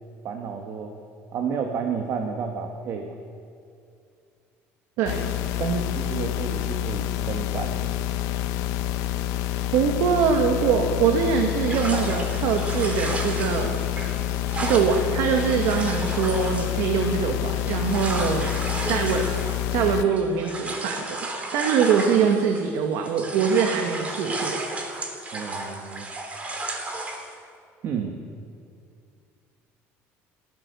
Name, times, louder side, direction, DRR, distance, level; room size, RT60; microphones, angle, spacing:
voice 1, 0.2-1.0 1.3-3.2 5.6-7.9 25.3-26.1 27.8-28.2, right 6 dB, 55° right, 4 dB, 2.1 m, -31 dB
voice 2, 5.0-5.3 9.7-13.8 14.6-18.5 18.9-19.3 19.7-21.3 21.5-24.6, right 6 dB, 75° right, 4 dB, 2.1 m, -23 dB
sound 1, 5.1-20.1, left 13 dB, 85° left, 1.0 m, -28 dB
sound 2, 11.7-22.8 23.0-27.3, right 2 dB, 25° right, 3.3 m, -34 dB
29.5 x 14.5 x 7.1 m, 2.4 s
cardioid pair, 130°, 5 cm